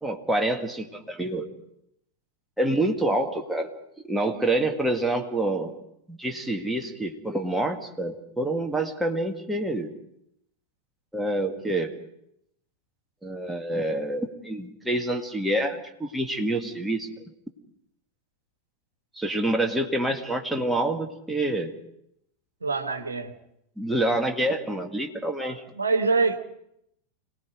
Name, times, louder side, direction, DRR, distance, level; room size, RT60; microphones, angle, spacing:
voice 1, 0.0-1.5 2.6-3.7 4.0-5.7 6.1-9.9 11.1-11.9 13.2-17.1 19.2-21.7 23.8-25.6, right 1 dB, 5° right, 3 dB, 2.1 m, -27 dB
voice 2, 22.6-23.3 25.4-26.4, right 4 dB, 75° right, 8 dB, 1.5 m, -25 dB
26.5 x 19.0 x 5.1 m, 0.78 s
figure-of-eight pair, 90°, 0 cm